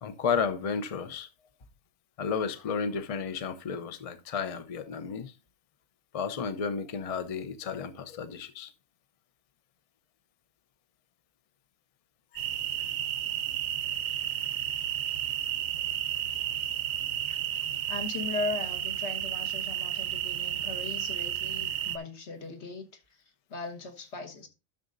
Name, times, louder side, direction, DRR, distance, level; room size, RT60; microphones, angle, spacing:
voice 1, 0.0-1.3 2.2-5.3 6.1-8.7, left 6 dB, 40° left, 0.5 m, -32 dB
sound 1, 12.4-22.0, right 11 dB, 80° right, 1.2 m, -32 dB
voice 2, 17.9-23.2 23.5-24.5, left 3 dB, 60° left, 1.5 m, -38 dB
12.5 x 6.5 x 2.5 m
omnidirectional pair, 1.3 m